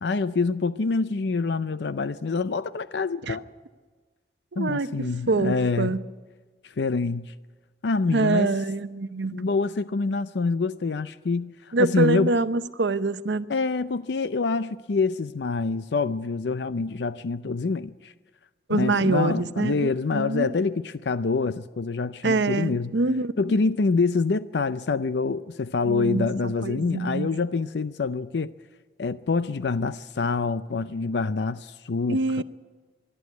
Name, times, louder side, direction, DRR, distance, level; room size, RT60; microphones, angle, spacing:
voice 1, 0.0-3.4 4.6-5.9 6.6-7.3 7.8-8.5 9.3-12.4 13.5-18.1 18.7-22.9 23.4-28.5 29.0-32.4, left 4 dB, 75° left, 0.5 m, -26 dB
voice 2, 4.5-6.0 8.1-9.4 11.7-13.5 18.7-20.5 22.2-23.6 25.9-27.3 32.1-32.4, right 3 dB, 85° right, 0.7 m, -25 dB
25.0 x 11.5 x 9.5 m
head